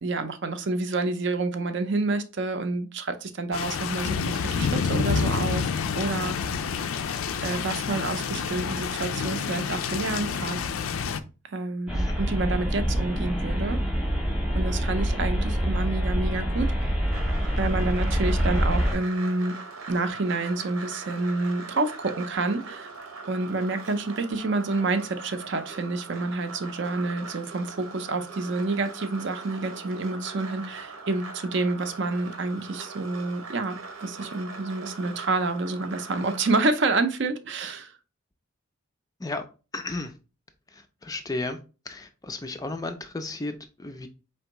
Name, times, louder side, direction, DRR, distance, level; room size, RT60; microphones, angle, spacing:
voice 1, 0.0-5.7 5.9-6.4 7.4-10.6 11.5-13.8 14.5-16.7 17.6-19.6 19.9-22.9 23.3-38.0, right 3 dB, 55° right, 0.5 m, -28 dB
sound 1, 3.5-11.2, left 5 dB, 85° left, 0.4 m, -28 dB
sound 2, 11.9-19.0, equal, 5° right, 0.8 m, -26 dB
sound 3, 17.1-36.7, right 4 dB, 85° right, 1.0 m, -41 dB
voice 2, 39.7-40.1 40.7-41.6 41.9-44.1, left 2 dB, 15° left, 0.3 m, -34 dB
4.4 x 3.3 x 2.9 m
head